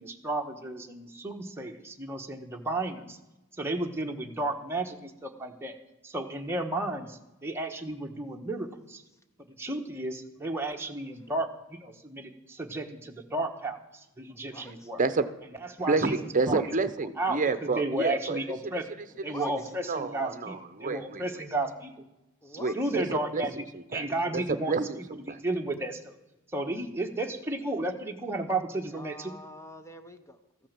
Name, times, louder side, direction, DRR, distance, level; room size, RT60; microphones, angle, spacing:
voice 1, 0.0-3.2 3.6-5.7 6.0-9.0 9.6-15.0 15.8-16.2 16.5-16.6 17.2-18.8 19.2-21.9 22.7-23.6 23.9-24.9 25.3-26.2 26.5-29.3, right 2 dB, 10° right, 2 dB, 1.2 m, -33 dB
voice 2, 14.4-14.9 19.1-19.7 21.1-21.2 22.4-22.9 28.9-30.7, left 1 dB, 15° left, 8 dB, 0.7 m, -47 dB
voice 3, 15.9-18.4 19.9-21.2 22.6-23.5 23.7-24.1 24.3-25.4, right 3 dB, 40° right, 11 dB, 0.8 m, -29 dB
14.5 x 8.6 x 7.4 m, 0.98 s
head